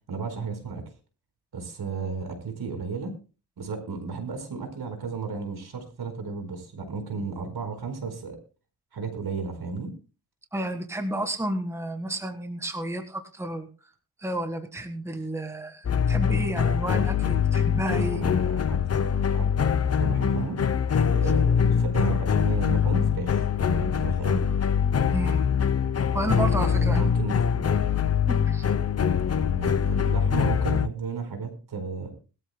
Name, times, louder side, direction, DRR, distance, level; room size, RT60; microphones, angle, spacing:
voice 1, 0.1-0.8 1.5-3.1 3.6-8.4 8.9-9.9 17.9-19.5 20.0-20.6 21.1-24.5 26.1-27.7 29.3-32.1, right 4 dB, 70° right, 6 dB, 4.7 m, -34 dB
voice 2, 10.5-13.7 14.2-18.2 25.1-25.4 26.1-27.0 28.3-28.7, right 1 dB, 5° right, 7 dB, 1.6 m, -31 dB
sound 1, 15.8-30.9, left 7 dB, 40° left, 0.7 m, -23 dB
21.0 x 13.0 x 2.2 m, 0.34 s
wide cardioid pair, 115°, 39 cm